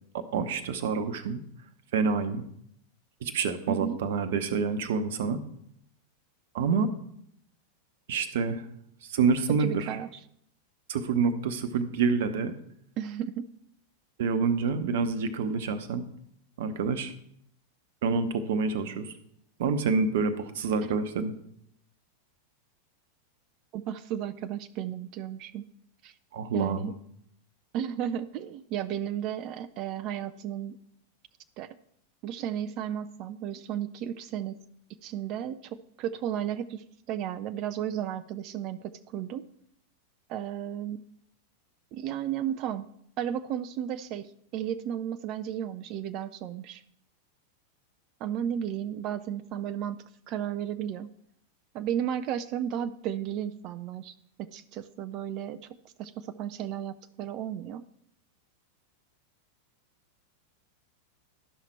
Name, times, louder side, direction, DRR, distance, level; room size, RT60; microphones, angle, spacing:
voice 1, 0.1-1.4 1.9-2.4 3.2-5.4 6.5-6.9 8.1-8.7 9.0-10.0 10.9-12.5 14.2-16.0 16.6-17.1 18.0-19.1 19.6-21.3 26.3-26.9, right 5 dB, 55° right, 11 dB, 0.8 m, -27 dB
voice 2, 3.7-4.0 9.6-10.1 13.0-13.5 23.7-25.6 26.0-26.1 26.5-26.9 27.7-30.8 31.6-31.8 32.2-34.5 35.0-39.5 40.3-41.0 41.9-42.8 43.2-46.8 48.2-50.0 50.3-51.1 51.7-55.7 56.0-57.8, right 10 dB, 40° right, 12 dB, 0.4 m, -34 dB
12.0 x 5.7 x 4.5 m, 0.70 s
figure-of-eight pair, 90°, 0 cm